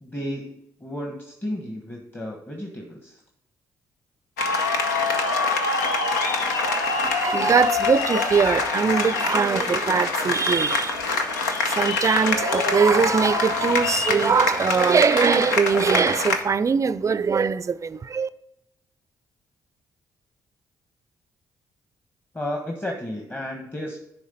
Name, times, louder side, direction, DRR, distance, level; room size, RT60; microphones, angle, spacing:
voice 1, 0.0-3.2 22.3-24.0, left 1 dB, 20° left, 1.2 m, -33 dB
sound 1, 4.4-16.4, left 3 dB, 85° left, 0.6 m, -25 dB
voice 2, 7.2-10.9 11.8-18.3, right 5 dB, 35° right, 0.4 m, -21 dB
10.0 x 3.5 x 5.4 m
hypercardioid pair, 40°, 9 cm